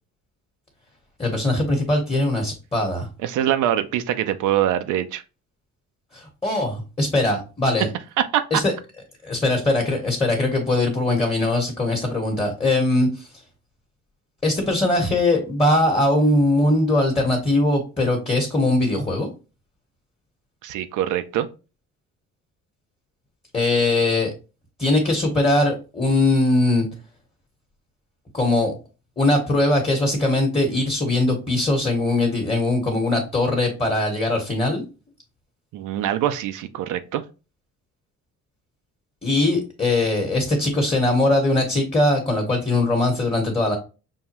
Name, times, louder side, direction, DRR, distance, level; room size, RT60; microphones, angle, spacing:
voice 1, 1.2-3.1 6.1-7.9 8.5-8.7 9.2-13.3 14.4-19.3 23.5-24.3 24.8-26.9 28.3-28.7 29.2-34.8 39.2-43.7, left 2 dB, 20° left, 1.3 m, -21 dB
voice 2, 3.2-5.2 8.2-8.4 20.6-21.5 35.7-37.2, right 11 dB, 80° right, 0.5 m, -23 dB
5.5 x 2.3 x 2.9 m
cardioid pair, 90°, 30 cm